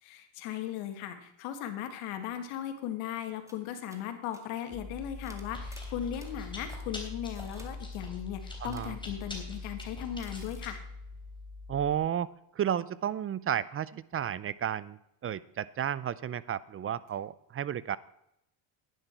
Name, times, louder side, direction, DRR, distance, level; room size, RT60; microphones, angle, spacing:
voice 1, 0.0-10.8, left 10 dB, 90° left, 7 dB, 1.9 m, -37 dB
sound 1, 3.2-3.3 3.5-3.6 3.9-4.1 4.3-4.4 5.2-6.3 6.7-7.0 7.3-7.7 8.7-8.9 10.2-10.6, right 1 dB, 5° right, 2.0 m, -54 dB
Chewing mastication, 4.7-12.0, left 2 dB, 10° left, 3.4 m, -42 dB
voice 2, 8.6-8.9 11.7-12.3 12.6-18.0, right 9 dB, 30° right, 19 dB, 0.4 m, -32 dB
11.0 x 10.5 x 4.5 m, 0.79 s
supercardioid pair, 100°, 50 cm